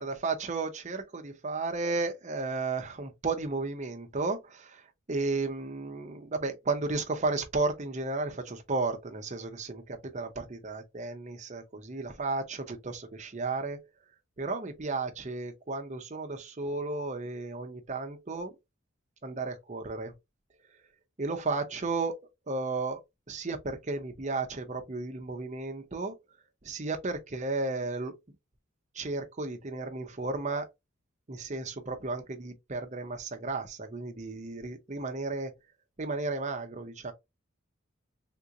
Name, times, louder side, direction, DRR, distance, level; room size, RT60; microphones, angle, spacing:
voice 1, 0.0-13.8 14.4-18.5 19.2-20.1 21.2-22.2 22.5-23.0 23.3-26.1 26.6-28.1 28.9-30.7 31.3-35.5 36.0-37.1, right 3 dB, 35° right, 0.7 m, -33 dB
3.6 x 2.5 x 2.8 m
head